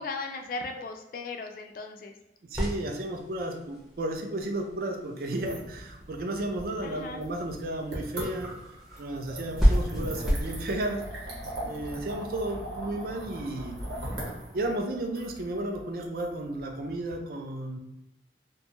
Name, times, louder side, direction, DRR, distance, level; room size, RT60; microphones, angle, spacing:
voice 1, 0.0-2.1 6.8-7.2, left 3 dB, 50° left, 4 dB, 0.3 m, -37 dB
voice 2, 2.4-8.6 9.0-11.0 11.6-13.8 14.5-17.8, right 1 dB, 55° right, 4 dB, 0.4 m, -33 dB
sound 1, 2.5-10.5, equal, ahead, 0.5 m, -31 dB
sound 2, 5.2-17.1, right 1 dB, 75° right, 1.0 m, -40 dB
2.6 x 2.2 x 2.9 m, 0.89 s
head